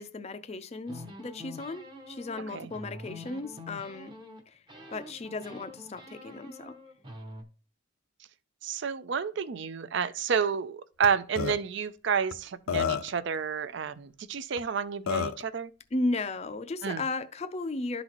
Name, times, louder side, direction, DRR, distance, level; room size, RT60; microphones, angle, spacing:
voice 1, 0.0-4.1 4.9-6.7 15.9-18.0, left 2 dB, 30° left, 0.4 m, -35 dB
sound 1, 0.9-4.4 4.7-7.4, left 1 dB, 20° right, 0.8 m, -46 dB
voice 2, 8.6-15.7 16.8-17.0, right 6 dB, 55° right, 0.4 m, -30 dB
Burping eructation, 11.0-11.1 11.4-11.6 12.3-12.4 12.7-13.2 14.6-14.7 15.1-15.4, left 7 dB, 85° left, 0.5 m, -29 dB
11.5 x 4.0 x 2.9 m
head